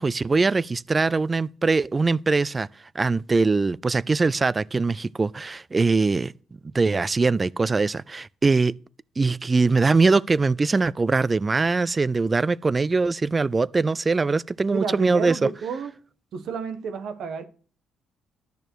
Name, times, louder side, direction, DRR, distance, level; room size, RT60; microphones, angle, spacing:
voice 1, 0.0-2.7 3.0-6.3 6.7-8.7 9.2-15.5, right 3 dB, 25° right, 0.3 m, -22 dB
voice 2, 14.7-15.9 16.3-17.4, right 5 dB, 70° right, 1.1 m, -31 dB
10.5 x 6.7 x 4.5 m
cardioid pair, 90°, 0 cm